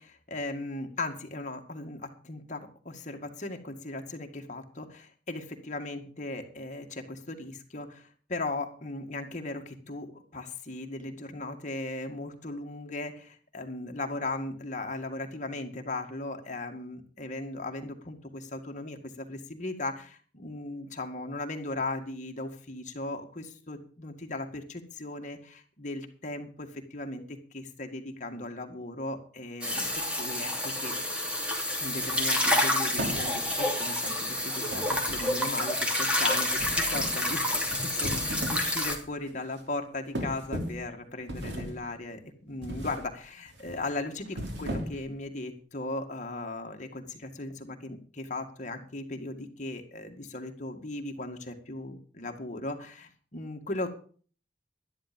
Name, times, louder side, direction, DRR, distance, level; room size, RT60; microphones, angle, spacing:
voice 1, 0.0-30.9 31.8-54.0, left 2 dB, 45° left, 4 dB, 2.0 m, -37 dB
sound 1, 29.6-39.0, left 1 dB, 5° right, 2.7 m, -28 dB
sound 2, 32.9-33.6 34.7-35.6 36.6-37.3 37.9-38.7 39.1-39.3 40.1-40.9 41.3-41.9 42.6-43.1 43.5-43.7 44.3-45.1, equal, 85° right, 3.3 m, -36 dB
12.0 x 11.5 x 5.3 m, 0.43 s
head